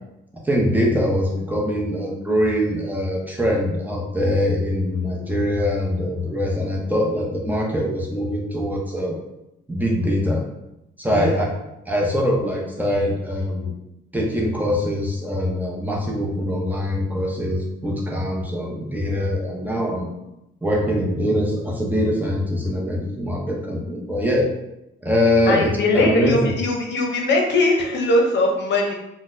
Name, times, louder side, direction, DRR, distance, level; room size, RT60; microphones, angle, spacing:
voice 1, 0.4-9.2 9.7-10.4 11.0-11.5 11.9-13.7 14.1-20.1 20.6-24.5 25.0-26.5, left 1 dB, 10° right, -3 dB, 0.7 m, -23 dB
voice 2, 5.1-5.5 11.1-11.5 25.5-28.9, left 2 dB, 65° left, 0 dB, 0.7 m, -21 dB
3.8 x 2.1 x 2.6 m, 0.89 s
cardioid pair, 90°, 20 cm